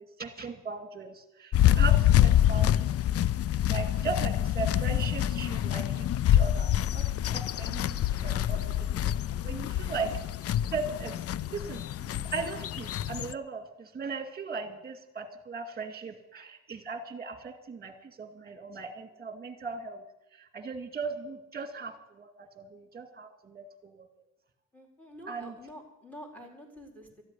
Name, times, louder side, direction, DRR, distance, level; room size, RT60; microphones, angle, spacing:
voice 1, 0.0-3.0 3.7-8.7 9.0-10.1 10.7-11.3 11.5-20.0 20.4-24.1 25.3-25.5, right 4 dB, 30° right, 6 dB, 2.3 m, -38 dB
sound 1, 1.5-13.3, left 11 dB, 50° left, 0.5 m, -26 dB
voice 2, 24.7-27.2, equal, 5° left, 1 dB, 4.3 m, -48 dB
13.5 x 8.2 x 9.7 m, 0.91 s
cardioid pair, 90°, 30 cm